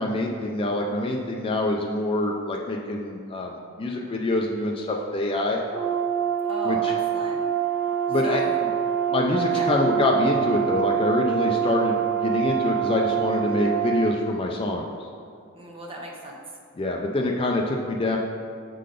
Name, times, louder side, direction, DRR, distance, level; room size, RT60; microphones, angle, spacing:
voice 1, 0.0-5.6 6.6-6.9 8.1-8.4 9.1-14.9 16.8-18.2, left 2 dB, 25° left, 0 dB, 0.4 m, -25 dB
Brass instrument, 5.7-14.1, right 9 dB, 5° right, 1.2 m, -25 dB
voice 2, 6.4-7.4 8.2-8.6 9.5-9.7 15.5-16.4, right 1 dB, 25° right, -1 dB, 1.0 m, -36 dB
6.5 x 3.9 x 5.0 m, 2.4 s
head